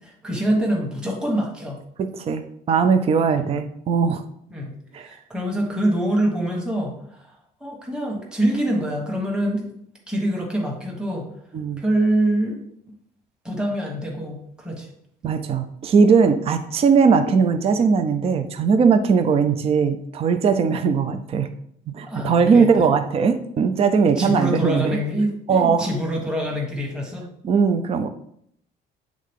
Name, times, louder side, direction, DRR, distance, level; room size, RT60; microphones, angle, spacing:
voice 1, 0.0-1.8 3.4-3.6 4.5-7.3 7.6-9.7 10.1-11.3 11.8-12.6 13.4-14.9 22.0-22.9 24.2-27.3, right 1 dB, 5° right, -2 dB, 1.3 m, -25 dB
voice 2, 2.0-4.2 4.9-5.1 11.5-11.8 15.2-21.5 21.9-25.0 25.5-25.9 27.4-28.1, right 5 dB, 35° right, 8 dB, 0.5 m, -19 dB
7.5 x 3.7 x 3.6 m, 0.70 s
cardioid pair, 130°, 17 cm